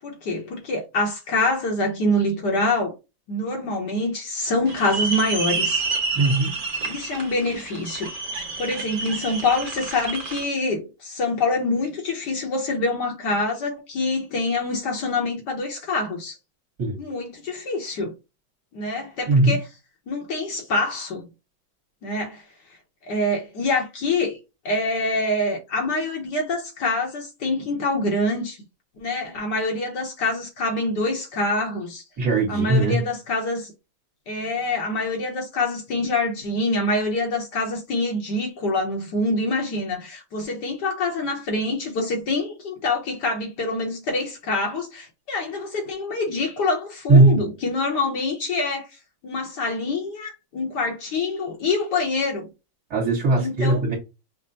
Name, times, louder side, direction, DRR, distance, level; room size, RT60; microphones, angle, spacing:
voice 1, 0.0-2.9 3.3-5.8 6.8-8.1 8.6-16.4 17.0-18.1 18.7-19.6 20.1-21.3 22.0-22.4 23.1-24.4 24.6-28.6 29.0-32.0 32.5-33.7 34.3-48.9 49.2-52.5 53.4-53.8, left 2 dB, 65° left, 1.5 m, -25 dB
sound 1, 4.7-10.4, right 4 dB, 40° right, 0.8 m, -29 dB
voice 2, 6.2-6.6 16.8-17.0 19.3-19.6 32.2-33.0 47.1-47.4 52.9-54.0, right 2 dB, 55° right, 1.7 m, -18 dB
5.4 x 2.1 x 2.6 m
omnidirectional pair, 2.1 m